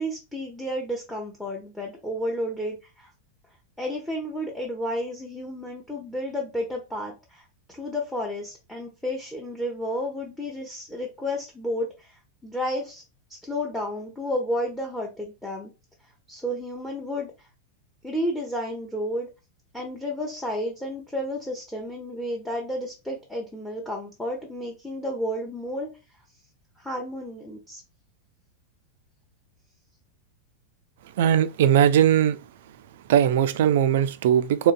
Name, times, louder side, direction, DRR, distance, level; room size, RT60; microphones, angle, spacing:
voice 1, 0.0-3.1 3.8-13.0 13.3-15.7 16.3-17.3 18.0-19.3 19.7-25.9 26.8-27.8, equal, 5° left, 0.7 m, -31 dB
voice 2, 31.2-32.4 33.1-34.7, right 10 dB, 55° right, 0.3 m, -19 dB
3.7 x 2.2 x 2.5 m
figure-of-eight pair, 90°, 0 cm